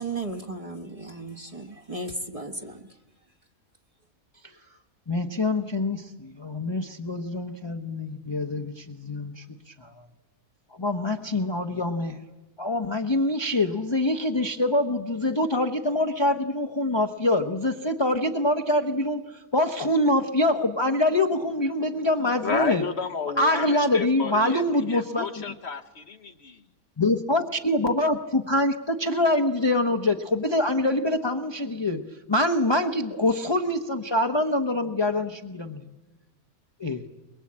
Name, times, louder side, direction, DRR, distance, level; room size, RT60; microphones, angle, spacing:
voice 1, 0.0-2.9, right 3 dB, 25° right, 1.3 m, -35 dB
voice 2, 5.1-10.0 10.8-12.2 12.6-22.8 23.4-25.4 27.0-32.0 32.3-35.9 36.8-37.0, left 1 dB, 20° left, 0.9 m, -25 dB
voice 3, 22.4-26.6, left 5 dB, 50° left, 1.1 m, -31 dB
22.5 x 22.0 x 8.6 m
omnidirectional pair, 1.5 m